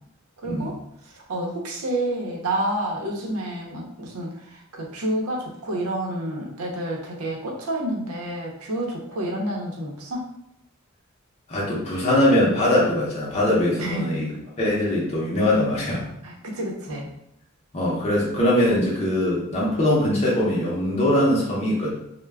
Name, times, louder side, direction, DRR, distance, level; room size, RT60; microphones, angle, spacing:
voice 1, 0.4-0.8 1.0-10.3 13.8-14.1 16.2-17.1, right 1 dB, 90° right, -1 dB, 0.7 m, -29 dB
voice 2, 11.5-14.3 14.6-16.1 17.7-21.9, left 1 dB, 30° left, -5 dB, 0.6 m, -21 dB
2.2 x 2.1 x 3.3 m, 0.77 s
head